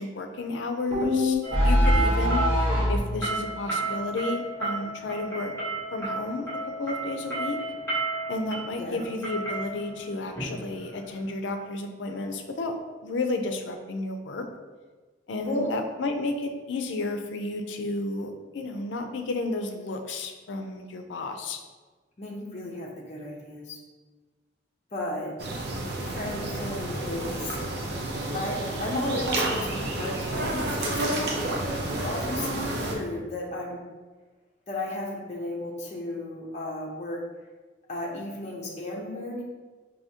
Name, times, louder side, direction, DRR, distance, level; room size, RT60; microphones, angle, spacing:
voice 1, 0.0-5.5 5.9-6.5 6.8-7.6 8.3-14.5 15.3-21.6, left 2 dB, 80° left, 5 dB, 0.5 m, -32 dB
sound 1, 0.9-3.1, equal, 30° right, 1.0 m, -22 dB
sound 2, 1.4-11.3, right 2 dB, 15° left, 1.1 m, -33 dB
voice 2, 15.4-15.7 22.2-23.8 24.9-25.3 25.8-27.6 28.3-31.3 31.9-33.8 34.7-37.2 37.9-39.4, left 1 dB, 40° left, -2 dB, 0.6 m, -34 dB
sound 3, 25.4-32.9, right 1 dB, 60° right, 0.6 m, -30 dB
4.8 x 2.7 x 2.7 m, 1.3 s
head